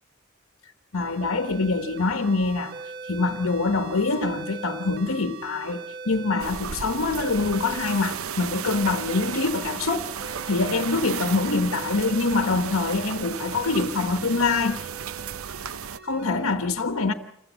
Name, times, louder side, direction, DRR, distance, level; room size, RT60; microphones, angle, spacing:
voice 1, 0.9-2.7 3.1-14.9 16.0-17.1, left 3 dB, 85° left, 1.1 m, -25 dB
sound 1, 0.9-16.5, right 5 dB, 50° right, 0.9 m, -41 dB
sound 2, 6.4-16.0, right 7 dB, 90° right, 0.7 m, -34 dB
27.0 x 15.0 x 7.3 m
head